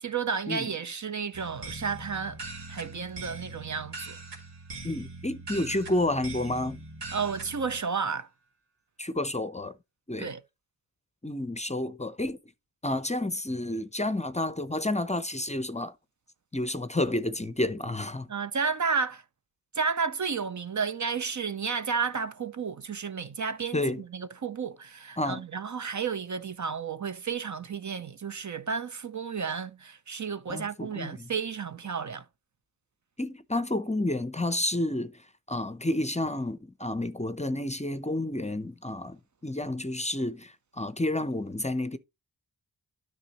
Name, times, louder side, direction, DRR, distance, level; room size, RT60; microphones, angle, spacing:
voice 1, 0.0-2.4 2.7-4.2 7.1-8.3 10.2-10.4 18.3-19.2 19.7-32.2, right 5 dB, 45° right, 0.6 m, -32 dB
sound 1, 1.3-7.8, right 3 dB, 80° right, 1.9 m, -42 dB
voice 2, 4.8-6.8 9.0-9.7 10.1-10.3 11.2-12.4 12.8-15.9 16.5-18.3 23.7-24.0 25.2-25.4 30.5-31.3 33.2-35.1 35.5-42.0, left 1 dB, 15° left, 0.6 m, -30 dB
9.9 x 6.0 x 2.9 m
cardioid pair, 45°, 41 cm